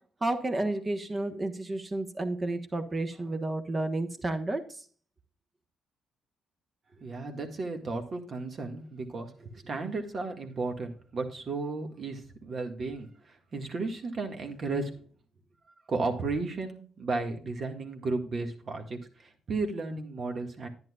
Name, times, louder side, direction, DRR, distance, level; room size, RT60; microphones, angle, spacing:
voice 1, 0.2-4.6, right 2 dB, 25° right, 7 dB, 1.3 m, -31 dB
voice 2, 7.0-14.9 15.9-20.7, right 3 dB, 45° right, 5 dB, 1.9 m, -34 dB
10.5 x 10.0 x 2.4 m, 0.43 s
cardioid pair, 90°, 0 cm